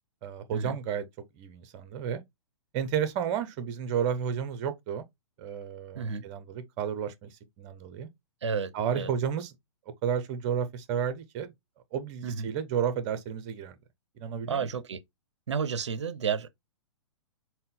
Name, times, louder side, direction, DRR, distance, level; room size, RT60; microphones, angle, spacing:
voice 1, 0.2-1.0 1.4-2.2 2.7-5.0 5.4-8.1 8.7-9.5 10.0-11.5 11.9-13.7 14.2-14.7, right 8 dB, 35° right, 0.7 m, -32 dB
voice 2, 8.4-9.1 12.2-12.5 14.4-15.0 15.5-16.5, right 6 dB, 70° right, 0.5 m, -31 dB
4.0 x 2.2 x 3.6 m
figure-of-eight pair, 110°, 15 cm